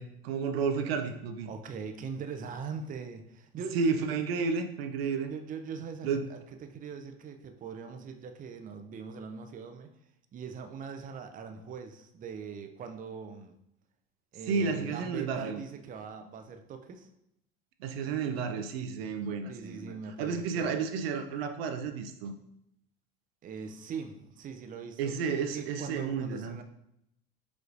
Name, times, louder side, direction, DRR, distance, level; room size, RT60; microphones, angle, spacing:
voice 1, 0.0-1.5 3.7-5.3 6.0-6.3 14.5-15.6 17.8-22.3 25.0-26.6, right 5 dB, 85° right, 7 dB, 0.5 m, -32 dB
voice 2, 1.5-4.1 5.3-9.9 10.3-13.5 14.3-17.1 19.5-20.7 23.4-25.1 25.5-26.6, right 6 dB, 30° right, 6 dB, 0.5 m, -41 dB
4.9 x 3.1 x 2.5 m, 0.78 s
hypercardioid pair, 90°, 29 cm